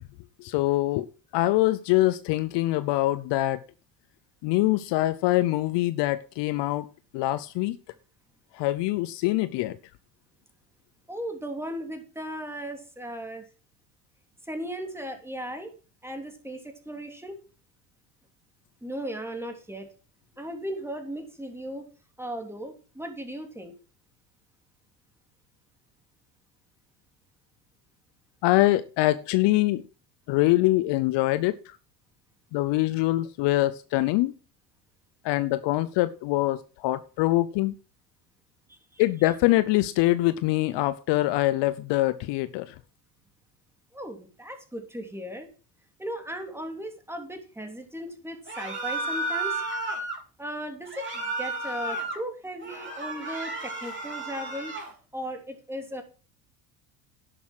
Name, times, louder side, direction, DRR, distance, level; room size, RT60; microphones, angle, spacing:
voice 1, 0.4-1.1 1.3-3.6 4.4-6.9 7.1-7.8 8.5-9.8 28.4-29.8 30.3-31.8 32.5-34.3 35.2-37.7 39.0-42.7, left 17 dB, 55° left, 0.8 m, -24 dB
voice 2, 11.1-13.4 14.4-15.7 16.0-17.4 18.8-19.9 20.4-21.9 22.2-23.7 38.7-39.0 43.9-45.5 46.0-49.6 50.4-54.7 55.1-56.0, equal, 5° right, 3.3 m, -37 dB
sound 1, 48.5-50.2 50.9-52.2 52.6-54.9, right 2 dB, 25° right, 4.6 m, -32 dB
11.0 x 7.1 x 6.2 m
hypercardioid pair, 75°, 49 cm